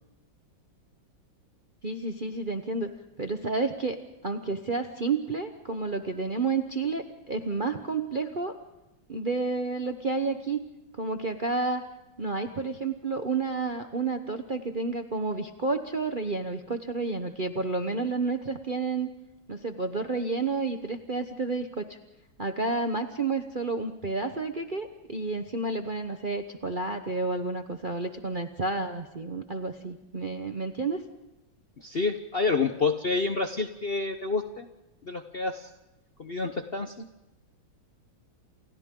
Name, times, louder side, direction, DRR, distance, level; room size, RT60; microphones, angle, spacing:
voice 1, 1.8-2.9 3.2-8.6 9.1-10.6 11.0-11.8 12.2-19.1 19.5-22.0 22.4-31.0, right 3 dB, 35° right, 6 dB, 0.8 m, -30 dB
voice 2, 31.8-34.7 35.0-35.7 36.2-37.0, left 4 dB, 40° left, 6 dB, 0.8 m, -28 dB
29.0 x 28.5 x 3.8 m, 0.97 s
omnidirectional pair, 2.2 m